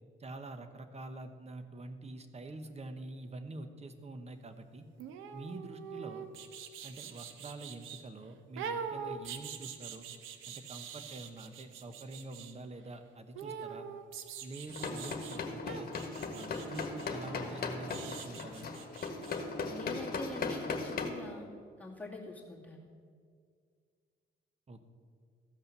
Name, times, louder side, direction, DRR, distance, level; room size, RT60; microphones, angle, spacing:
voice 1, 0.2-4.9 5.3-6.3 6.8-10.1 10.5-13.9 14.4-15.9 16.3-18.7 24.7-24.8, right 2 dB, 30° right, 9 dB, 1.0 m, -46 dB
sound 1, 5.0-8.0 8.6-12.5 13.3-15.4 15.7-19.4 19.7-19.8, right 7 dB, 90° right, 0.8 m, -44 dB
sound 2, 14.7-21.1, left 4 dB, 50° left, 1.4 m, -38 dB
voice 2, 19.7-21.5 21.8-22.9, left 2 dB, 5° left, -4 dB, 2.4 m, -44 dB
14.0 x 5.5 x 6.7 m, 2.1 s
cardioid pair, 90°, 20 cm